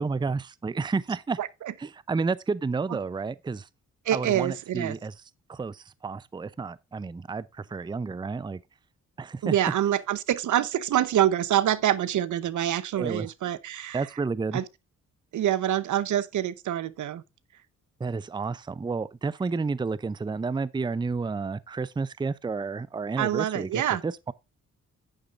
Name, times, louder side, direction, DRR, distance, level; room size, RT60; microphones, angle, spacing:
voice 1, 0.0-1.4 1.8-3.7 4.1-5.1 5.5-8.6 9.2-9.5 12.9-13.3 13.9-14.6 18.0-24.3, right 4 dB, 15° right, 0.5 m, -31 dB
voice 2, 1.4-1.7 4.0-5.0 9.4-14.1 14.5-14.6 15.3-17.2 23.2-24.0, right 11 dB, 80° right, 0.9 m, -26 dB
10.0 x 9.1 x 2.5 m
cardioid pair, 100°, 30 cm